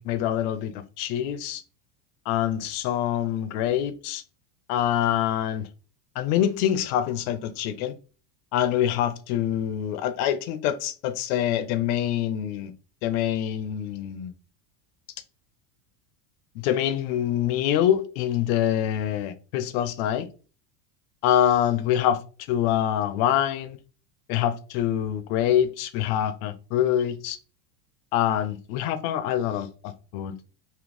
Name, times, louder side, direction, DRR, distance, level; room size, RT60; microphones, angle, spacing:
voice 1, 0.0-1.6 2.3-4.2 4.7-5.7 6.2-7.9 8.5-12.7 13.0-14.3 16.6-20.3 21.2-22.2 22.5-23.8 24.3-27.4 28.1-30.4, left 10 dB, 60° left, 0.7 m, -25 dB
3.5 x 2.7 x 3.8 m
supercardioid pair, 145°, 49 cm